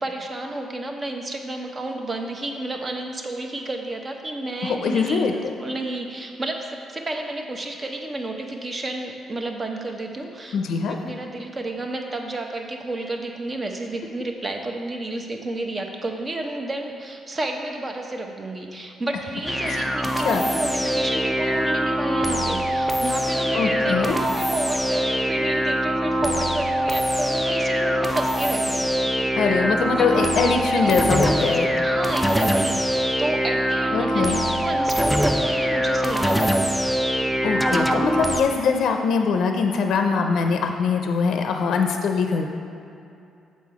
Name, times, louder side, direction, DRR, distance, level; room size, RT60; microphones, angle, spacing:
voice 1, 0.0-5.3 5.6-10.6 10.9-29.2 29.6-30.1 30.3-36.6, right 2 dB, 30° right, 3 dB, 0.8 m, -31 dB
voice 2, 4.6-5.3 10.5-11.0 19.6-19.9 20.2-20.4 23.5-24.2 29.4-31.7 33.9-34.4 37.4-42.5, left 5 dB, 70° left, 4 dB, 0.5 m, -22 dB
sound 1, 19.5-38.4, equal, ahead, 0.4 m, -23 dB
7.3 x 4.2 x 4.7 m, 2.6 s
cardioid pair, 90°, 0 cm